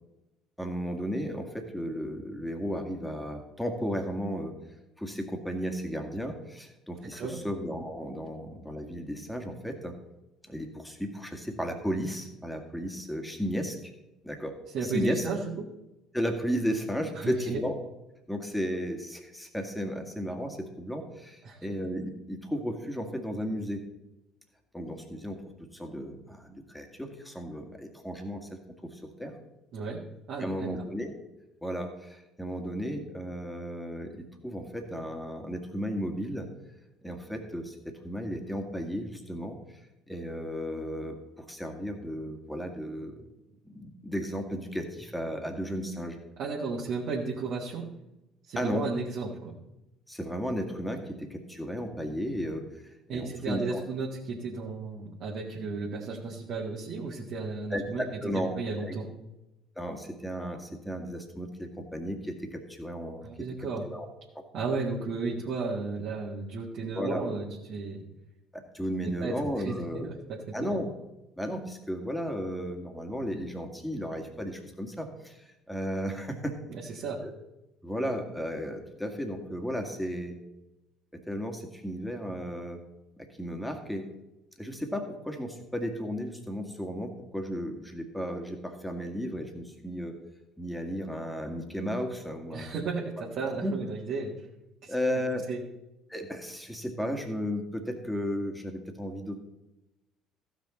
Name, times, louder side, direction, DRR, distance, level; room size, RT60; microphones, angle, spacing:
voice 1, 0.6-4.5 5.0-10.0 10.5-13.9 14.2-15.3 16.1-17.7 18.3-23.8 24.7-25.4 25.7-29.3 30.4-31.1 31.6-36.5 37.0-37.8 38.0-39.6 40.1-43.2 43.7-46.2 48.6-48.9 50.1-53.8 57.7-58.5 58.8-59.0 59.8-63.5 63.9-64.1 64.4-64.5 66.9-67.2 68.5-70.1 70.5-70.9 71.4-76.6 76.9-77.3 77.8-80.4 81.1-82.8 83.2-84.1 84.6-90.2 90.6-92.7 93.6-93.7 94.9-95.5 96.1-99.4, equal, 5° left, 4 dB, 1.9 m, -34 dB
voice 2, 14.7-15.6 17.2-17.6 21.4-21.7 29.7-30.0 30.3-30.9 46.4-47.9 48.5-49.5 53.1-58.0 58.6-59.1 63.2-63.8 64.5-68.0 69.0-69.3 69.6-70.2 70.6-70.8 76.9-77.2 92.5-94.3 94.8-94.9 95.5-95.6, right 4 dB, 55° right, -3 dB, 1.7 m, -33 dB
15.0 x 6.2 x 4.3 m, 0.96 s
hypercardioid pair, 60°, 0 cm